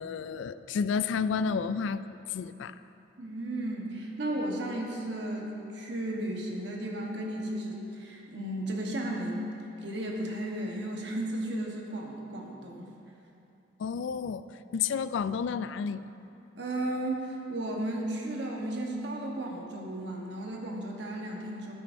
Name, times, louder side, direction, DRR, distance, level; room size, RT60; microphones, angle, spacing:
voice 1, 0.0-2.0 2.3-2.8 13.8-14.4 14.7-16.1, left 6 dB, 70° left, 13 dB, 0.3 m, -31 dB
voice 2, 3.2-9.5 9.8-12.9 16.6-21.7, right 1 dB, 60° right, -1 dB, 1.1 m, -34 dB
15.0 x 8.6 x 2.6 m, 2.8 s
head